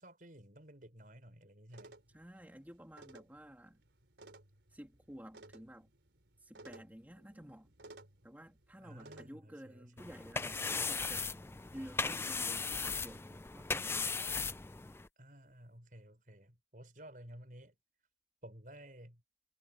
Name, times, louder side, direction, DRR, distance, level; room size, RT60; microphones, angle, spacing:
voice 1, 0.0-2.0 8.8-10.1 15.2-17.8 18.4-19.2, right 1 dB, 50° right, 5.6 m, -54 dB
sound 1, 1.7-9.3, right 2 dB, 85° right, 3.6 m, -58 dB
voice 2, 2.1-3.8 4.7-5.9 6.4-7.7 8.2-11.3 11.7-14.1, equal, 10° right, 2.9 m, -52 dB
sound 2, 10.0-15.1, left 4 dB, 15° left, 0.4 m, -37 dB
head